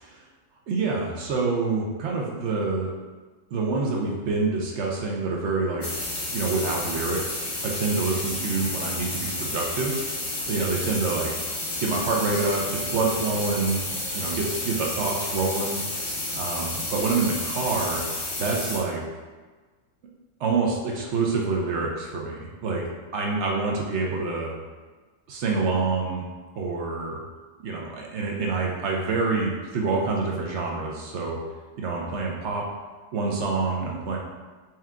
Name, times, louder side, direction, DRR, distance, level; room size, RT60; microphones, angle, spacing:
voice 1, 0.7-2.9 3.5-5.9 6.3-10.0 10.5-11.3 11.8-13.8 14.1-15.8 16.4-18.0 18.4-19.0 20.4-24.5 25.3-26.3 26.6-27.2 27.6-31.4 31.8-32.7 33.1-34.2, right 3 dB, 65° right, -2 dB, 0.7 m, -27 dB
sound 1, 5.8-18.8, left 2 dB, 40° left, 0.9 m, -31 dB
4.3 x 2.3 x 3.5 m, 1.3 s
omnidirectional pair, 1.5 m